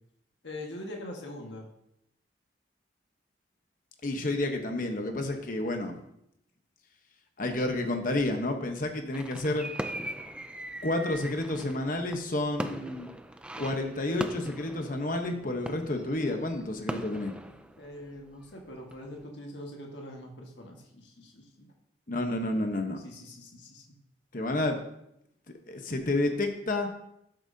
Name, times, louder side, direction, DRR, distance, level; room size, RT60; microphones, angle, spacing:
voice 1, 0.4-1.7 17.8-21.7 23.0-23.9, left 1 dB, 75° left, 0 dB, 1.6 m, -43 dB
voice 2, 4.0-5.9 7.4-9.7 10.8-13.1 13.6-17.3 22.1-23.0 24.3-24.8 25.7-26.9, left 2 dB, 45° left, 5 dB, 1.0 m, -30 dB
sound 1, 9.1-18.5 18.9-19.1, right 1 dB, 5° right, 0.4 m, -40 dB
12.5 x 7.6 x 2.8 m, 0.78 s
head